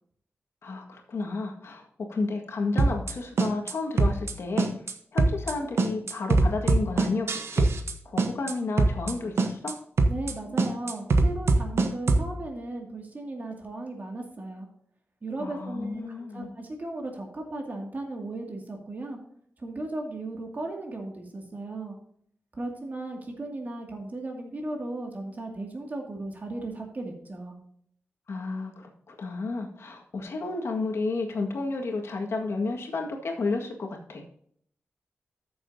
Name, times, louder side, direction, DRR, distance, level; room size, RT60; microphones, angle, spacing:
voice 1, 0.6-4.7 5.1-7.7 8.1-9.8 15.4-16.5 28.3-34.3, left 3 dB, 75° left, 2 dB, 1.7 m, -32 dB
sound 1, 2.8-3.1 3.4-4.3 4.6-4.9 5.2-5.5 5.8-7.9 8.2-8.5 8.8-9.1 9.4-9.7 10.0-10.3 10.6-12.3, right 3 dB, 75° right, 1.0 m, -22 dB
voice 2, 10.1-14.7 15.2-19.2 19.6-22.0 22.5-27.6, right 2 dB, 40° right, 1 dB, 2.2 m, -36 dB
13.5 x 7.1 x 2.7 m, 0.65 s
wide cardioid pair, 130°, 4 cm